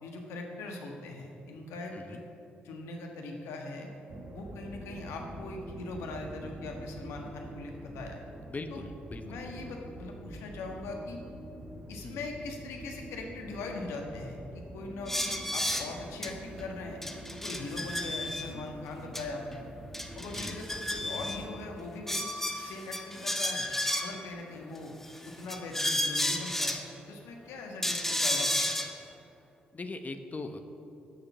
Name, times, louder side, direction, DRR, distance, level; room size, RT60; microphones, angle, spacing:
voice 1, 0.0-2.2 2.6-3.9 4.3-8.2 8.7-8.8 9.2-11.2 11.9-17.0 17.4-19.6 20.1-22.3 22.5-23.6 24.0-25.0 25.2-26.8 27.1-28.7, left 2 dB, 70° left, 2 dB, 1.5 m, -41 dB
sound 1, 4.1-21.6, right 1 dB, 40° right, 1.4 m, -46 dB
voice 2, 8.4-9.5 12.0-12.3 20.2-20.6 29.7-30.6, left 3 dB, 35° left, 8 dB, 1.0 m, -41 dB
sound 2, 15.1-15.9 16.2-16.3 16.6-16.7 17.0-18.4 19.1-19.2 19.5-19.6 19.9-21.4 22.1-24.2 25.0-26.8 27.8-28.9, left 1 dB, 5° left, 1.3 m, -32 dB
11.0 x 6.9 x 7.0 m, 2.8 s
hypercardioid pair, 40°, 5 cm